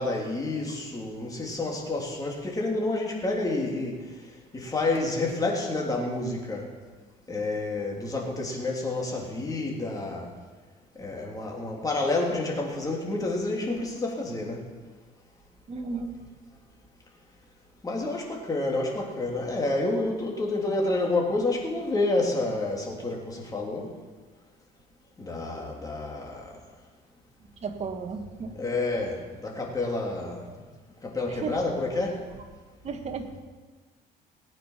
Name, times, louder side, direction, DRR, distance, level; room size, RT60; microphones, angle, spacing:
voice 1, 0.0-4.0 4.5-6.7 7.3-10.3 11.0-14.6 17.8-23.9 25.2-26.5 28.5-30.5 31.0-32.2, left 2 dB, 20° left, -1 dB, 3.4 m, -29 dB
voice 2, 15.7-16.1 27.6-28.6 31.2-31.6 32.8-33.4, right 5 dB, 40° right, 5 dB, 1.6 m, -34 dB
18.5 x 9.1 x 5.8 m, 1.4 s
cardioid pair, 110°, 17 cm